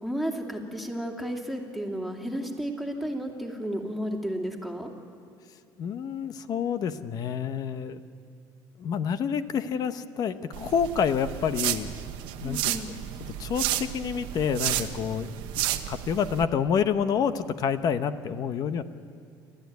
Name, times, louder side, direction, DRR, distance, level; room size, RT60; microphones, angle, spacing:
voice 1, 0.0-4.9 12.4-12.9, equal, ahead, 1 dB, 2.6 m, -32 dB
voice 2, 5.8-8.0 8.8-11.9 12.4-12.6 13.4-15.3 15.6-18.8, left 7 dB, 50° left, 11 dB, 0.9 m, -28 dB
sound 1, 10.5-16.4, right 13 dB, 85° right, 1.1 m, -32 dB
29.5 x 13.0 x 9.4 m, 2.3 s
cardioid pair, 125°, 8 cm